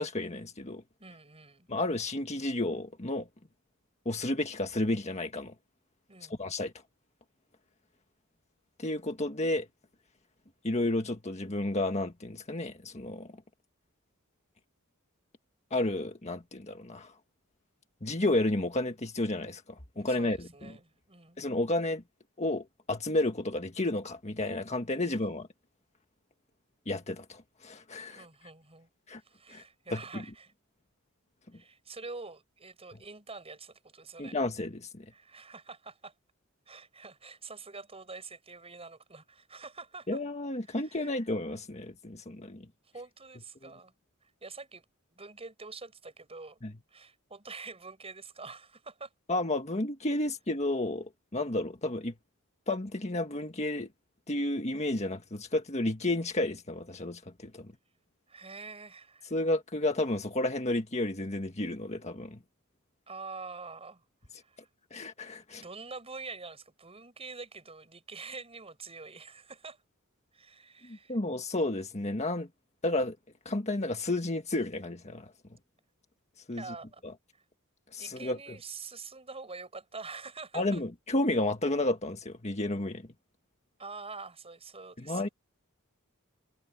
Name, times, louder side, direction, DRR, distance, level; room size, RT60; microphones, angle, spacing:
voice 1, 0.0-0.8 1.7-3.3 4.1-5.5 6.3-6.7 8.8-9.7 10.6-13.3 15.7-17.1 18.0-19.6 20.0-20.5 21.4-22.0 22.4-25.5 26.9-28.2 29.1-29.2 29.5-29.6 29.9-30.2 34.2-35.1 40.1-42.7 46.6-46.7 49.3-52.1 52.7-53.9 54.3-57.7 59.3-62.4 64.9-65.6 70.9-72.5 72.8-73.2 73.5-75.3 76.5-76.6 77.9-78.4 80.5-83.0 85.0-85.3, left 2 dB, 30° left, 1.7 m, -31 dB
voice 2, 1.0-1.7 6.1-6.4 20.0-21.4 28.1-28.9 29.2-30.5 31.5-34.4 35.1-36.1 36.7-40.2 40.7-41.1 42.8-43.9 44.2-46.6 46.9-49.1 58.3-59.3 63.1-64.1 64.3-64.7 65.6-69.8 70.3-71.2 76.5-77.0 77.3-77.4 78.0-80.8 83.8-85.3, right 4 dB, 30° right, 6.9 m, -46 dB
head